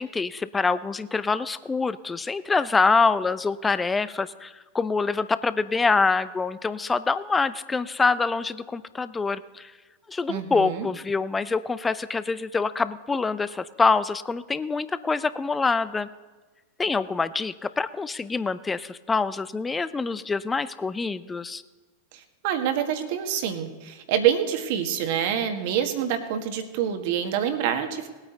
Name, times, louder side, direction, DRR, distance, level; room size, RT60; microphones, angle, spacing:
voice 1, 0.0-9.7 10.1-16.1 16.8-21.6, left 4 dB, 15° left, 15 dB, 0.6 m, -25 dB
voice 2, 10.3-10.9 22.1-28.1, right 9 dB, 55° right, 7 dB, 1.7 m, -26 dB
19.5 x 9.0 x 4.0 m, 1.3 s
hypercardioid pair, 95°, 0 cm